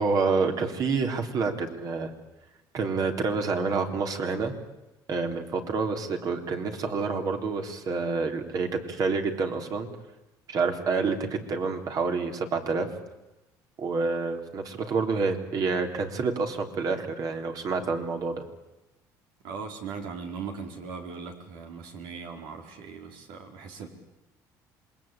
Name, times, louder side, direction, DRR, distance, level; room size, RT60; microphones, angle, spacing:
voice 1, 0.0-2.1 2.7-4.5 5.1-9.9 10.5-12.9 13.8-18.4, right 4 dB, 50° right, 5 dB, 3.8 m, -28 dB
voice 2, 19.4-23.9, right 5 dB, 90° right, 4 dB, 4.6 m, -39 dB
27.0 x 22.0 x 9.0 m, 0.97 s
cardioid pair, 110°, 8 cm